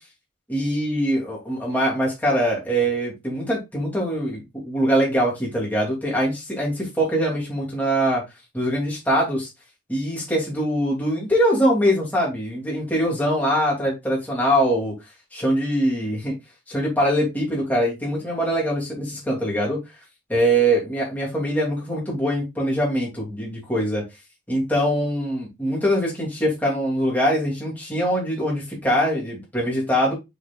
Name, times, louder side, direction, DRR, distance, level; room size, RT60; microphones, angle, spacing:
voice 1, 0.5-8.2 8.5-9.5 9.9-14.9 15.3-16.3 16.7-19.8 20.3-24.0 24.5-30.1, equal, 10° left, 2.9 m, -23 dB
6.2 x 6.0 x 2.5 m
head